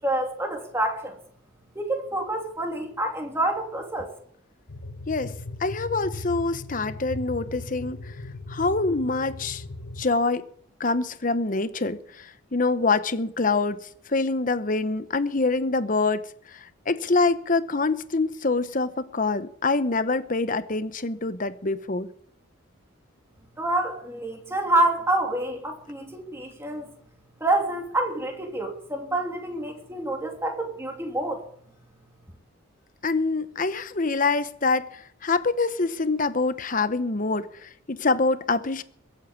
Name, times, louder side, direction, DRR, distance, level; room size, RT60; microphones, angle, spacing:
voice 1, 0.0-1.1 1.7-4.1 23.6-26.9 27.4-31.4, right 1 dB, 10° right, 2.9 m, -27 dB
sound 1, 4.7-10.0, left 2 dB, 80° left, 1.3 m, -38 dB
voice 2, 5.1-8.2 8.5-9.6 10.0-10.5 10.8-22.1 33.0-38.8, left 3 dB, 40° left, 0.9 m, -25 dB
22.5 x 8.5 x 7.3 m
head